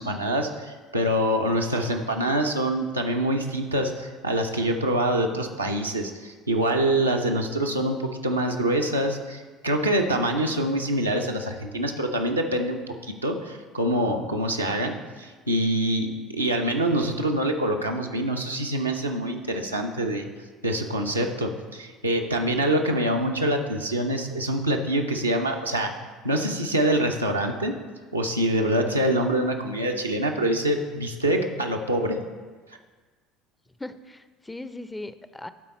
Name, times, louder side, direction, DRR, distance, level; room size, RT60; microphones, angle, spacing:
voice 1, 0.0-12.8 13.2-16.1 16.3-20.3 20.6-25.9 26.2-27.8 28.1-32.2, right 1 dB, 90° right, 1 dB, 0.5 m, -25 dB
voice 2, 33.8-35.5, left 2 dB, 10° left, 12 dB, 0.4 m, -38 dB
12.0 x 4.0 x 4.2 m, 1.4 s
figure-of-eight pair, 60°, 0 cm